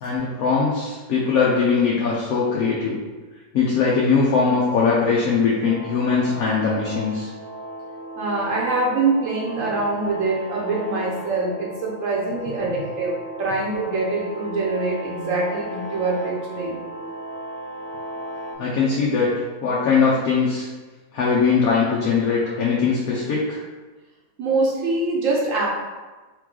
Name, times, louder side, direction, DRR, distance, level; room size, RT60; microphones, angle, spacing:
voice 1, 0.0-3.0 3.5-7.3 18.6-19.3 19.6-20.7 21.1-23.6, left 5 dB, 80° left, -5 dB, 1.2 m, -21 dB
sound 1, 5.6-18.6, right 1 dB, 90° right, 1.8 m, -36 dB
voice 2, 8.2-16.8 24.4-25.7, right 3 dB, 65° right, -3 dB, 1.1 m, -24 dB
3.8 x 3.1 x 3.7 m, 1.3 s
omnidirectional pair, 1.5 m